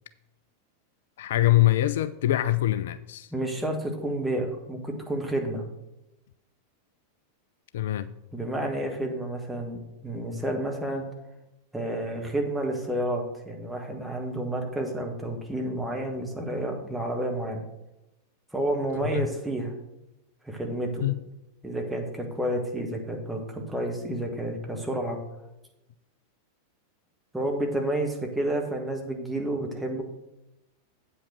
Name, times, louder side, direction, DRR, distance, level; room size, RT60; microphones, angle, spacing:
voice 1, 1.2-3.3 7.7-8.1 19.0-19.3 21.0-21.2, left 14 dB, 55° left, 0.3 m, -24 dB
voice 2, 3.3-5.6 8.3-11.0 11.7-17.6 18.5-19.7 20.4-21.0 21.6-25.2 27.3-30.0, right 1 dB, 5° right, 1.6 m, -30 dB
8.4 x 5.3 x 6.2 m
figure-of-eight pair, 90°, 0 cm